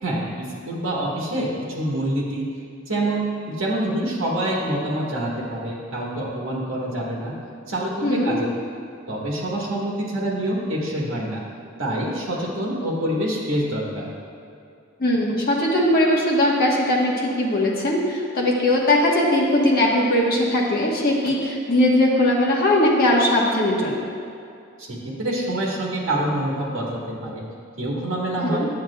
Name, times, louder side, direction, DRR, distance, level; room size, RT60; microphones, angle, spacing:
voice 1, 0.0-2.5 2.9-7.3 7.7-8.5 9.1-11.4 11.8-14.1 24.8-27.4 27.8-28.7, right 1 dB, 65° right, -4 dB, 1.5 m, -26 dB
voice 2, 8.0-8.3 15.0-24.0 28.4-28.7, left 1 dB, 45° left, -4 dB, 1.3 m, -20 dB
10.0 x 7.3 x 2.3 m, 2.5 s
head